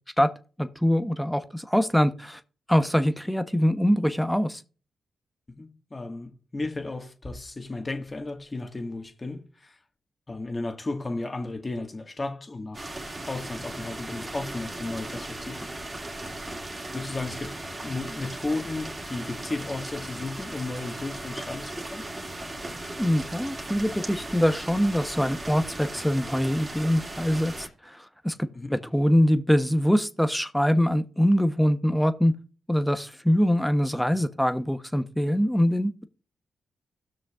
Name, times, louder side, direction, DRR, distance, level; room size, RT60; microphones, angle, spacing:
voice 1, 0.6-2.4 2.7-4.6 23.0-27.5 27.8-32.3 32.7-36.1, equal, 5° left, 0.9 m, -23 dB
voice 2, 5.5-9.8 10.3-13.0 13.3-15.7 16.9-17.5 17.8-22.0 28.5-28.7, left 2 dB, 35° left, 1.6 m, -34 dB
sound 1, 12.7-27.7, right 1 dB, 35° right, 2.5 m, -37 dB
16.5 x 6.3 x 2.4 m
hypercardioid pair, 40°, 0 cm